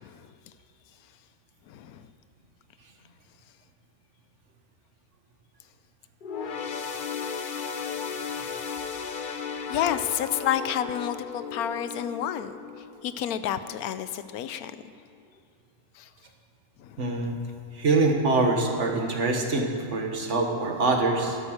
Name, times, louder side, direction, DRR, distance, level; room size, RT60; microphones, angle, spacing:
voice 1, 1.7-2.1 9.7-12.5 13.0-14.8 16.0-16.1 16.8-17.3, left 10 dB, 90° left, 12 dB, 1.1 m, -30 dB
sound 1, 6.2-13.9 14.3-14.5 15.4-15.5, left 6 dB, 50° left, 0.7 m, -35 dB
voice 2, 17.0-17.4 17.8-21.4, right 3 dB, 55° right, 3 dB, 1.7 m, -24 dB
12.5 x 11.0 x 6.5 m, 2.5 s
omnidirectional pair, 1.5 m